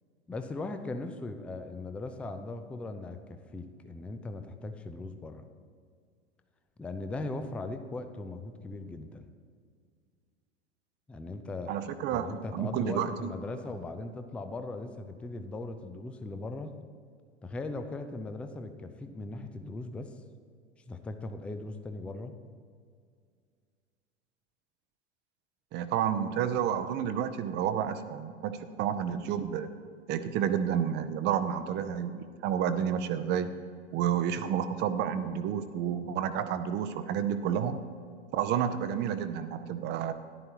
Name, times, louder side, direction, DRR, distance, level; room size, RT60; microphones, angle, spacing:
voice 1, 0.3-5.4 6.8-9.3 11.1-11.8 12.1-16.7 17.4-20.2 20.9-22.3, left 2 dB, 5° left, 8 dB, 0.3 m, -39 dB
voice 2, 11.7-13.3 25.7-29.7 30.1-33.5 33.9-37.8 38.3-40.1, right 9 dB, 30° right, 11 dB, 0.7 m, -30 dB
14.0 x 11.0 x 2.9 m, 2.1 s
figure-of-eight pair, 90°, 34 cm